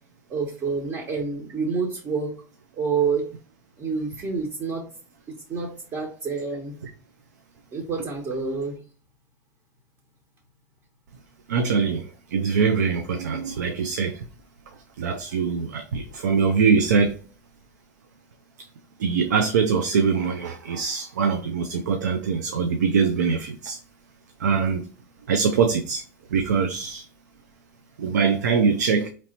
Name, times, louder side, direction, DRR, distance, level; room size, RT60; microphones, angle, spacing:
voice 1, 0.3-2.3 2.7-3.2 3.8-4.8 5.3-6.8 7.7-8.8, right 5 dB, 40° right, 1.1 m, -28 dB
voice 2, 11.5-14.2 15.0-17.2 19.0-23.8 24.4-24.9 25.3-26.0 26.3-27.0 28.0-29.1, right 5 dB, 90° right, 0.4 m, -23 dB
4.1 x 3.0 x 2.8 m
hypercardioid pair, 95°, 9 cm